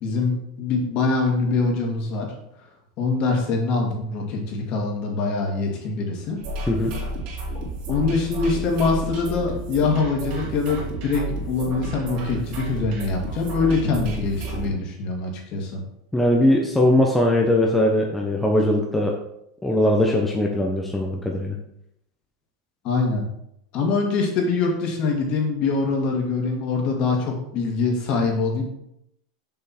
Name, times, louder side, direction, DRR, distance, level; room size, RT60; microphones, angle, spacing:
voice 1, 0.0-2.3 3.0-6.4 7.9-15.8 22.8-23.3 23.7-28.6, left 4 dB, 45° left, 0 dB, 2.1 m, -24 dB
sound 1, 6.4-14.7, right 2 dB, 50° right, 3.1 m, -31 dB
voice 2, 16.1-19.2 19.6-21.6, left 1 dB, 5° left, 0 dB, 0.8 m, -20 dB
6.7 x 5.6 x 4.3 m, 0.78 s
supercardioid pair, 140°, 2 cm